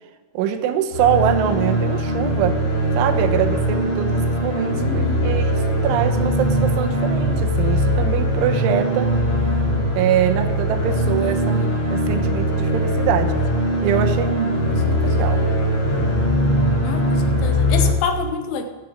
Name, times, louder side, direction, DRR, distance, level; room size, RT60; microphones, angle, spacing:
voice 1, 0.3-2.6 3.0-9.1 10.0-13.3 13.8-14.5 14.9-15.5, right 9 dB, 80° right, 7 dB, 3.3 m, -23 dB
sound 1, 0.9-17.9, equal, 30° left, 3.4 m, -20 dB
voice 2, 4.7-5.3 10.9-11.5 14.7-15.3 16.8-18.6, left 5 dB, 90° left, 7 dB, 3.5 m, -29 dB
15.0 x 10.0 x 5.2 m, 1.3 s
omnidirectional pair, 5.5 m